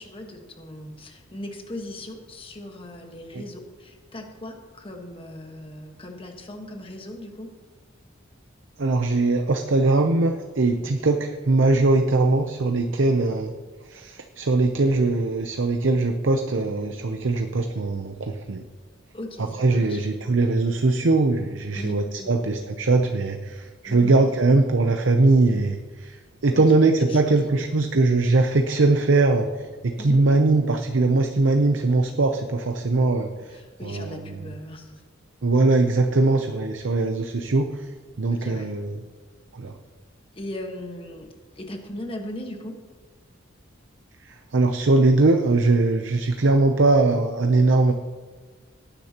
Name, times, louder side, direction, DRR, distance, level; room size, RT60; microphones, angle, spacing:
voice 1, 0.0-7.5 10.7-11.1 19.1-20.0 21.7-22.3 23.8-24.2 26.5-27.5 30.0-30.2 33.5-35.0 38.3-38.7 40.3-41.3 41.5-42.8, left 1 dB, 25° left, 3 dB, 1.4 m, -38 dB
voice 2, 8.8-13.5 13.8-18.6 19.6-29.5 29.8-33.3 33.8-34.4 35.4-37.9 38.2-39.0 39.5-39.7 44.3-47.9, right 3 dB, 65° right, 5 dB, 0.7 m, -21 dB
18.0 x 10.0 x 3.0 m, 1.5 s
head